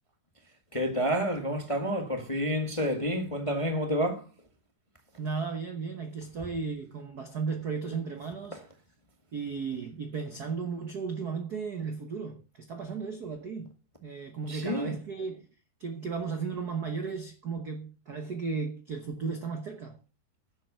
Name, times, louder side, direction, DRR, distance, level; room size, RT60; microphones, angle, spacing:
voice 1, 0.7-4.3 8.5-8.6 14.5-15.0, equal, 15° left, 1.1 m, -29 dB
voice 2, 5.2-8.6 9.3-13.7 14.0-15.5 15.8-20.0, right 5 dB, 65° right, 0.9 m, -35 dB
11.0 x 7.9 x 6.7 m
omnidirectional pair, 3.6 m